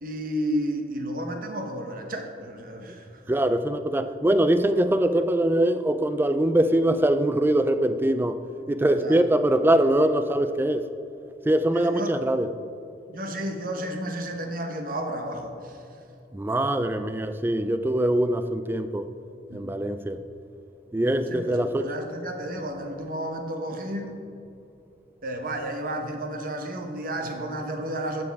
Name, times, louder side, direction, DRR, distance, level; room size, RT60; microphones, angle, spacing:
voice 1, 0.0-3.1 8.9-9.2 11.7-12.1 13.1-16.1 19.5-19.7 21.3-24.2 25.2-28.2, right 1 dB, 55° right, 4 dB, 1.0 m, -32 dB
voice 2, 3.3-8.4 8.7-10.8 11.5-12.5 16.3-19.1 19.5-20.2 20.9-21.9, right 1 dB, 10° right, 10 dB, 0.3 m, -23 dB
12.0 x 7.1 x 3.5 m, 2.7 s
head